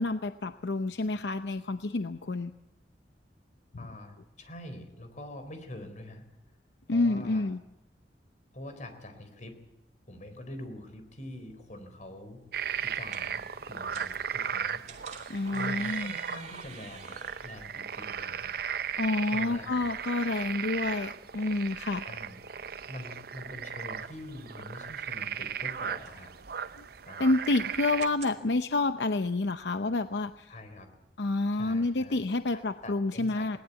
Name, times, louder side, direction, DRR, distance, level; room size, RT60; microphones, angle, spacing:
voice 1, 0.0-2.5 6.9-7.6 15.3-16.1 19.0-22.1 26.8-26.9 27.2-30.5 31.2-33.6, left 2 dB, 75° left, 10 dB, 0.7 m, -29 dB
voice 2, 3.8-6.2 6.9-7.5 8.5-9.6 10.1-12.4 12.8-13.4 13.7-14.8 15.5-18.5 19.3-19.9 22.0-22.4 22.9-26.3 27.1-27.3 30.5-30.9 31.5-32.2 32.5-33.6, left 1 dB, 45° left, 7 dB, 4.1 m, -45 dB
sound 1, 11.2-28.4, right 5 dB, 40° right, 2.6 m, -53 dB
sound 2, 12.5-28.1, right 8 dB, 60° right, 0.7 m, -36 dB
20.5 x 18.5 x 8.3 m, 0.87 s
head